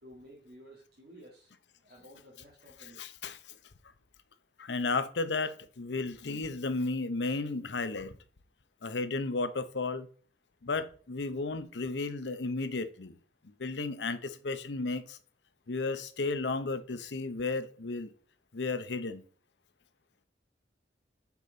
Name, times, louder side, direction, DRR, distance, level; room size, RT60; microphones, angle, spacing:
voice 1, 0.0-3.1, equal, 60° right, 1.9 m, -54 dB
voice 2, 3.0-3.5 4.6-8.1 8.8-10.1 10.6-13.1 13.4-15.2 15.7-18.1 18.5-19.2, left 3 dB, 85° left, 0.8 m, -33 dB
5.9 x 5.8 x 3.9 m
head